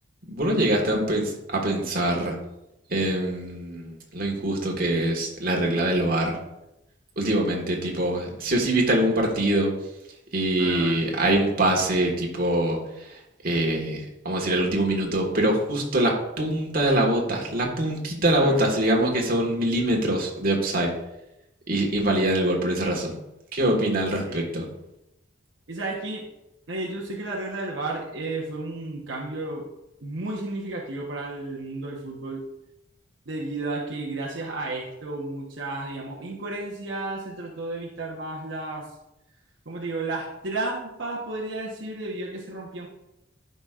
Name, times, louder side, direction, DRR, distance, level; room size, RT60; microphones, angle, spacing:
voice 1, 0.3-2.3 2.9-6.4 7.2-9.7 10.3-20.9 21.7-23.1 23.5-24.7, right 1 dB, 50° right, 0 dB, 1.6 m, -24 dB
voice 2, 10.6-11.1 18.3-18.6 24.2-24.5 25.7-26.3 26.7-29.6 30.0-32.4 33.3-38.9 39.7-42.9, right 2 dB, 70° right, -3 dB, 1.1 m, -32 dB
13.5 x 5.4 x 2.5 m, 0.90 s
head